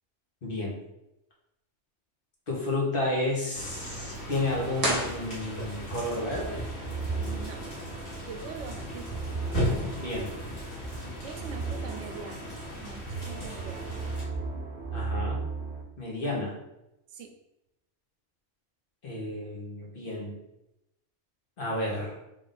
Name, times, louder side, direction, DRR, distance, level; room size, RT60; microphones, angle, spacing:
voice 1, 0.4-0.8 2.5-6.6 10.0-10.3 14.9-15.4 16.0-16.5 19.0-20.3 21.6-22.1, left 1 dB, 50° left, -3 dB, 1.1 m, -31 dB
sound 1, 3.5-14.2, equal, 80° left, 1.9 m, -37 dB
sound 2, 4.8-6.0, right 1 dB, 20° right, 0.9 m, -31 dB
sound 3, 6.3-15.8, right 4 dB, 55° right, 0.9 m, -37 dB
voice 2, 7.2-7.6 8.3-9.3 11.2-14.0 17.1-17.3, right 6 dB, 90° right, 4 dB, 0.9 m, -43 dB
3.6 x 2.5 x 3.8 m, 0.87 s
omnidirectional pair, 1.2 m